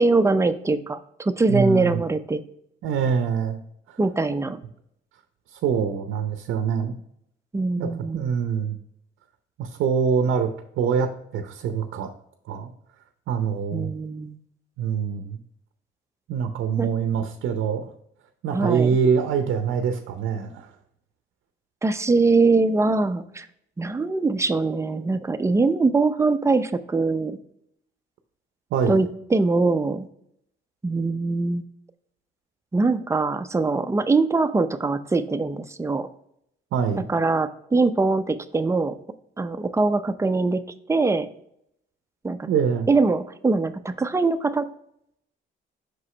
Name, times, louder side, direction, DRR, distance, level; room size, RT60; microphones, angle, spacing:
voice 1, 0.0-2.4 4.0-4.6 7.5-8.4 13.7-14.4 16.8-16.9 18.5-18.9 21.8-23.5 23.8-27.4 28.9-30.1 30.8-31.6 32.7-36.1 37.1-39.0 39.4-40.6 40.9-41.3 42.2-42.5 42.9-44.7, right 3 dB, 15° right, 10 dB, 0.5 m, -22 dB
voice 2, 1.5-2.0 2.8-3.6 3.9-4.0 5.5-7.0 7.8-8.8 9.6-10.5 10.8-12.1 12.5-12.7 13.3-13.9 14.8-15.4 16.3-17.9 18.4-20.7 28.7-29.0 36.7-37.1 42.5-42.9, right 6 dB, 80° right, 7 dB, 0.6 m, -24 dB
6.2 x 4.9 x 3.2 m, 0.74 s
cardioid pair, 90°, 20 cm